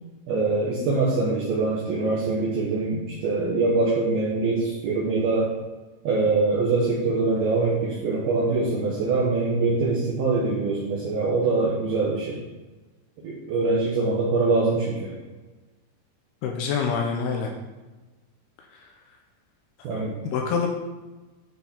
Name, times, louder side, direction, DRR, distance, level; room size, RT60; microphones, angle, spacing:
voice 1, 0.3-5.5 6.0-12.4 13.2-15.1 19.8-20.1, right 3 dB, 65° right, -6 dB, 2.8 m, -23 dB
voice 2, 16.4-17.5 18.7-18.8 20.2-20.7, left 6 dB, 80° left, 2 dB, 2.4 m, -26 dB
9.9 x 4.6 x 4.4 m, 1.2 s
omnidirectional pair, 5.3 m